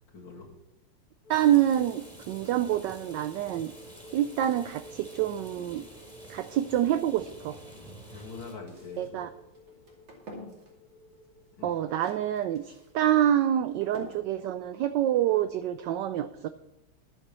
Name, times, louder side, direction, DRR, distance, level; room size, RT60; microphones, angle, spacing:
voice 1, 0.1-0.5 7.7-9.3 11.6-11.8, left 4 dB, 60° left, -6 dB, 2.8 m, -44 dB
sound 1, 1.2-14.7 14.9-15.2, equal, 85° left, 2.5 m, -55 dB
Rain, 1.3-8.5, equal, ahead, 2.8 m, -49 dB
voice 2, 1.3-3.7 4.1-5.9 6.3-7.6 9.0-9.3 11.6-16.5, right 11 dB, 75° right, 11 dB, 1.0 m, -27 dB
sound 2, 8.1-15.7, equal, 60° right, 3.4 m, -52 dB
11.5 x 7.3 x 6.8 m, 0.91 s
omnidirectional pair, 2.3 m